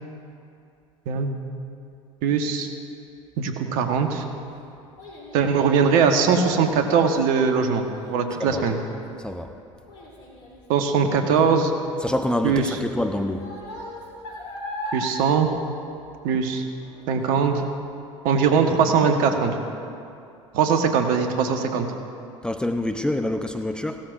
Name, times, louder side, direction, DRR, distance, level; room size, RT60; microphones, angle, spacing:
voice 1, 2.2-2.7 3.4-4.2 5.3-8.8 10.7-11.7 12.4-12.8 14.9-15.5 16.2-16.6 17.1-17.6 18.2-19.7 20.5-21.9, right 6 dB, 60° right, 5 dB, 1.2 m, -21 dB
Child speech kid speaking, 3.8-16.5 16.8-17.2 17.7-17.8, left 1 dB, 70° left, 3.4 m, -40 dB
voice 2, 12.0-13.4 22.4-24.0, left 1 dB, 5° left, 6 dB, 0.6 m, -26 dB
17.0 x 13.0 x 2.6 m, 2.6 s
hypercardioid pair, 70°, 16 cm